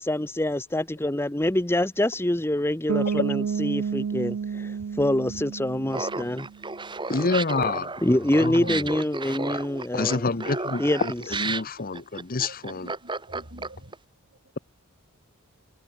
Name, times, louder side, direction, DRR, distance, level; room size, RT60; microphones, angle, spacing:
voice 1, 0.0-6.5 8.0-10.4 10.8-11.4, left 1 dB, 10° left, 0.8 m, -26 dB
Bass guitar, 2.9-6.6, right 6 dB, 90° right, 0.4 m, -30 dB
Laughter, 5.9-13.9, right 3 dB, 20° right, 2.3 m, -32 dB
voice 2, 7.1-7.9 8.4-8.8 9.9-12.9, left 3 dB, 40° left, 0.9 m, -27 dB
voice 3, 8.6-8.9 11.5-11.6 12.4-14.0 14.3-14.4, right 1 dB, 50° right, 5.7 m, -46 dB
head